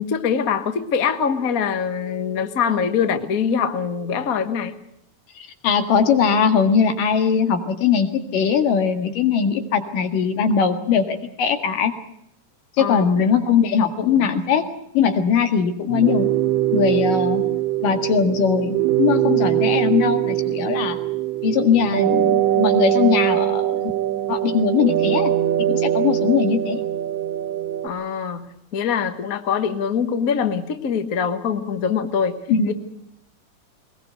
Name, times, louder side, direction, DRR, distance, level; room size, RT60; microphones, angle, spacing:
voice 1, 0.0-4.8 12.8-13.3 13.9-14.4 27.8-32.4 32.7-32.8, left 7 dB, 50° left, 9 dB, 1.0 m, -23 dB
voice 2, 5.4-11.9 12.8-14.7 14.9-16.3 16.7-17.4 17.8-18.7 19.0-21.0 21.4-23.8 24.3-25.3 25.6-26.8 32.5-32.7, left 7 dB, 85° left, 7 dB, 3.5 m, -20 dB
sound 1, 15.9-27.9, right 12 dB, 85° right, 2.7 m, -22 dB
21.5 x 20.5 x 7.9 m, 0.74 s
omnidirectional pair, 3.7 m